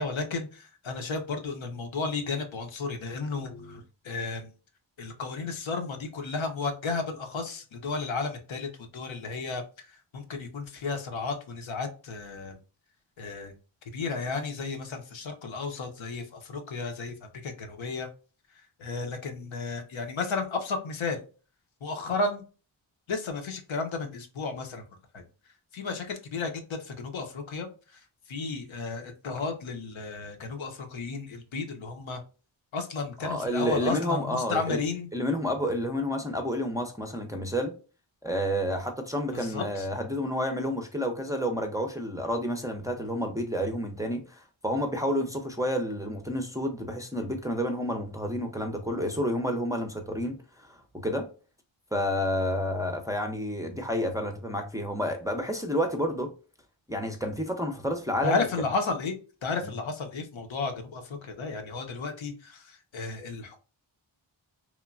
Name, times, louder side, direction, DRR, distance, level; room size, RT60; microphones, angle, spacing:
voice 1, 0.0-4.5 5.0-12.6 13.2-13.5 13.9-18.1 18.8-21.2 21.8-22.4 23.1-24.9 25.1-25.2 25.7-28.0 28.3-32.2 32.7-35.1 39.3-39.9 58.2-59.2 59.4-63.6, left 4 dB, 75° left, 0.7 m, -33 dB
voice 2, 33.2-34.8 35.1-37.7 38.2-51.3 51.9-56.3 56.9-58.4, equal, 5° right, 0.5 m, -30 dB
3.0 x 2.2 x 2.4 m
cardioid pair, 50°, 47 cm